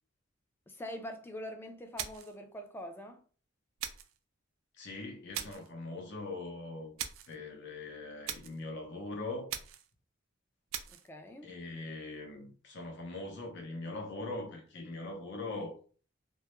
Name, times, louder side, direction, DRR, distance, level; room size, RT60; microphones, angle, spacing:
voice 1, 0.7-3.2 10.9-11.5, equal, 10° left, 0.3 m, -44 dB
sound 1, 2.0-2.4 3.8-4.2 5.3-5.7 7.0-7.4 8.3-8.6 9.5-9.9 10.7-11.1, right 10 dB, 75° right, 0.3 m, -40 dB
voice 2, 4.8-6.9 7.3-9.5 11.4-15.8, left 2 dB, 60° left, 0.7 m, -41 dB
2.2 x 2.1 x 2.9 m
head